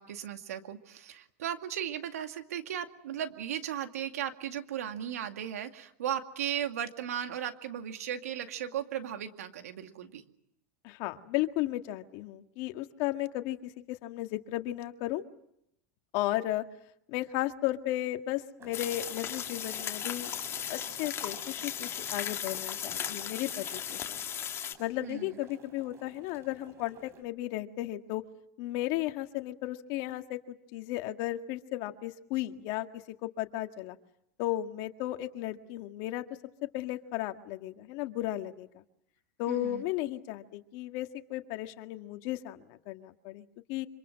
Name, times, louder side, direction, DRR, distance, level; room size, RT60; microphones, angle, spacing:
voice 1, 0.0-10.2 25.0-25.4 39.5-39.8, right 10 dB, 85° right, 7 dB, 2.2 m, -36 dB
voice 2, 10.8-15.2 16.1-16.6 17.1-20.3 20.7-24.2 24.8-28.2 28.6-34.0 34.4-36.2 36.7-38.8 39.4-43.9, left 15 dB, 60° left, 7 dB, 1.9 m, -35 dB
sound 1, 18.6-27.2, right 3 dB, 35° right, 5.1 m, -52 dB
sound 2, 18.7-24.7, left 9 dB, 35° left, 2.4 m, -36 dB
26.5 x 26.0 x 7.5 m, 0.77 s
supercardioid pair, 115°, 8 cm